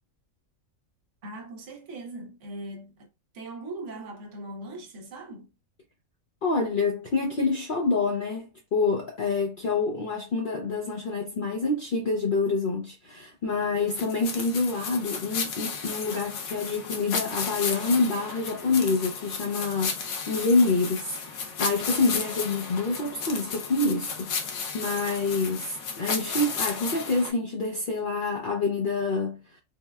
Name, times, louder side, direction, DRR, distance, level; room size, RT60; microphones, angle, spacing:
voice 1, 1.2-3.1 3.3-5.5, right 2 dB, 65° right, 1.0 m, -40 dB
voice 2, 6.4-29.4, left 3 dB, 65° left, 0.5 m, -27 dB
sound 1, 13.9-27.3, left 5 dB, 90° left, 1.1 m, -33 dB
3.5 x 2.1 x 2.2 m
omnidirectional pair, 1.4 m